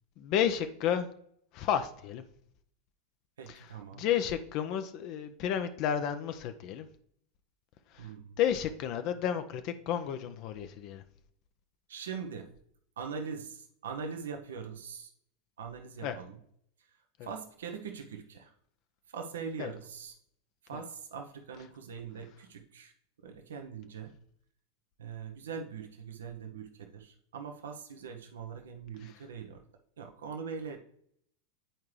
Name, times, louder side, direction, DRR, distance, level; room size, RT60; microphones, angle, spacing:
voice 1, 0.2-1.1 1.5-2.2 3.5-6.9 7.9-8.1 8.4-11.0 16.0-16.2 19.6-19.7 20.7-20.8 29.0-29.2, left 9 dB, 50° left, 9 dB, 0.6 m, -32 dB
voice 2, 3.4-4.1 8.0-8.4 11.9-12.5 13.0-15.1 15.6-16.4 16.8-17.0 17.2-18.5 19.1-20.1 20.6-22.9 23.2-24.2 25.0-29.6 30.0-30.8, right 6 dB, 75° right, 4 dB, 0.7 m, -42 dB
8.9 x 4.6 x 3.2 m, 0.67 s
hypercardioid pair, 90°, 0 cm